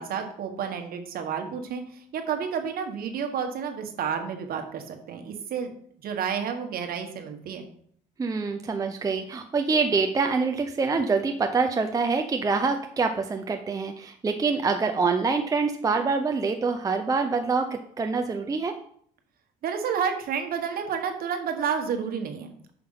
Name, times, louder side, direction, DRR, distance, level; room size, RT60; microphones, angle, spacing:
voice 1, 0.0-1.8 2.1-5.7 6.0-7.7 19.6-22.7, right 7 dB, 60° right, 5 dB, 1.3 m, -30 dB
voice 2, 8.2-18.7, right 4 dB, 20° right, 5 dB, 0.5 m, -25 dB
5.8 x 5.0 x 5.6 m, 0.62 s
cardioid pair, 110°, 17 cm